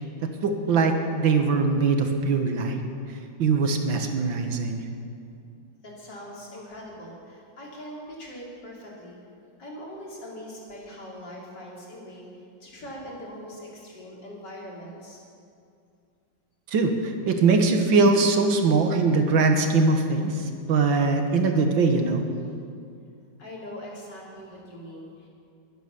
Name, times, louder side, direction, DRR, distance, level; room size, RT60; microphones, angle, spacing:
voice 1, 0.4-2.8 3.4-4.9 16.7-22.2, right 4 dB, 80° right, 5 dB, 2.1 m, -22 dB
voice 2, 5.8-9.2 9.6-12.3 12.6-15.2 23.4-25.3, equal, 65° left, -4 dB, 4.0 m, -41 dB
22.0 x 9.2 x 6.9 m, 2.4 s
omnidirectional pair, 2.1 m